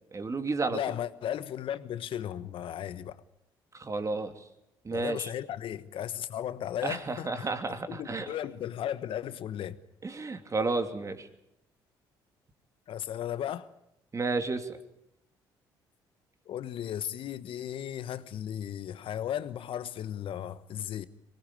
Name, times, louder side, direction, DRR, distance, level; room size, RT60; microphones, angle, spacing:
voice 1, 0.1-0.8 3.7-4.3 4.8-5.3 6.8-8.3 10.0-11.3 14.1-14.7, right 3 dB, 30° right, 2.8 m, -31 dB
voice 2, 0.7-3.2 4.9-7.5 7.9-9.8 12.9-13.7 16.5-21.1, left 10 dB, 60° left, 1.3 m, -35 dB
24.0 x 18.5 x 8.9 m
hypercardioid pair, 60°, 10 cm